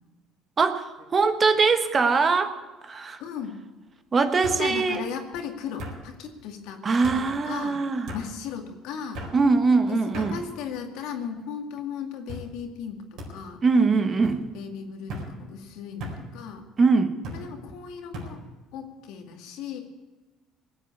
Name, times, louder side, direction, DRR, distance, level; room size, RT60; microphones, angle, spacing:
voice 1, 0.6-2.5 2.8-3.2 4.1-5.0 6.8-8.1 9.3-10.4 13.6-14.4 16.8-17.1, right 4 dB, 35° right, 9 dB, 1.3 m, -22 dB
sound 1, 1.0-1.4 1.7-2.3 3.4-3.5 4.4-4.6 5.8-6.0 7.0-7.2 8.1-8.3 9.1-9.4 10.1-10.3 11.1-11.5 12.3-12.5 13.2-13.3 14.2-14.4 15.1-15.3 16.0-16.2 17.2-17.4 18.1-18.3, equal, 65° right, 4.6 m, -37 dB
voice 2, 3.2-3.6 4.3-7.8 8.1-9.2 9.9-13.6 14.5-16.7 17.3-18.4 18.7-19.8, left 7 dB, 80° left, 4 dB, 2.2 m, -36 dB
19.5 x 7.9 x 8.3 m, 1.2 s
supercardioid pair, 95°, 0 cm